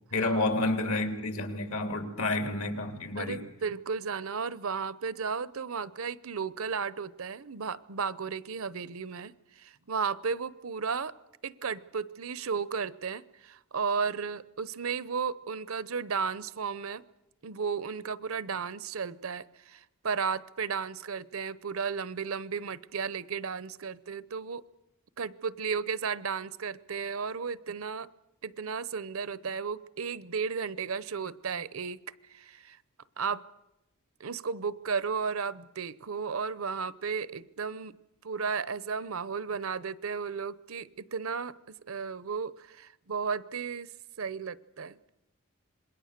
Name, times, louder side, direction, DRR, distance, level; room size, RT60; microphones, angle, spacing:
voice 1, 0.1-3.4, left 2 dB, 75° left, 6 dB, 3.1 m, -30 dB
voice 2, 3.1-11.1 11.4-17.0 17.4-24.6 25.2-28.1 28.4-32.0 32.3-32.8 33.2-33.4 34.2-38.0 38.2-43.9 44.2-45.0, right 5 dB, 70° right, 18 dB, 0.8 m, -34 dB
27.0 x 21.0 x 6.7 m, 0.92 s
head